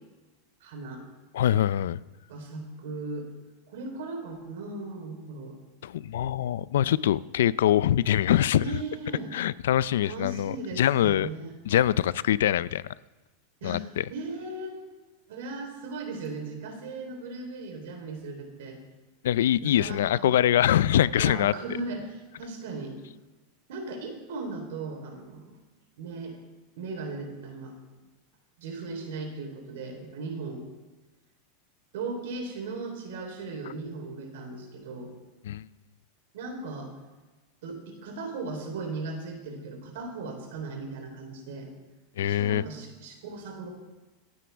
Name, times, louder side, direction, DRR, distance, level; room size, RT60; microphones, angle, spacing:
voice 1, 0.6-1.0 2.3-3.3 3.7-5.6 8.6-9.4 10.0-11.5 13.6-13.8 14.1-14.8 15.3-18.8 19.6-20.4 21.2-23.0 23.7-25.6 26.0-26.4 26.8-27.7 28.6-30.7 31.9-35.1 36.3-36.9 37.6-41.7 42.2-43.7, right 3 dB, 75° right, 3 dB, 3.6 m, -37 dB
voice 2, 1.3-2.0 5.8-8.7 9.3-11.3 11.7-12.8 13.6-14.0 19.2-21.5 35.5-35.7 42.2-42.6, left 11 dB, 85° left, 19 dB, 0.4 m, -24 dB
26.5 x 9.4 x 3.5 m, 1.2 s
supercardioid pair, 150°, 0 cm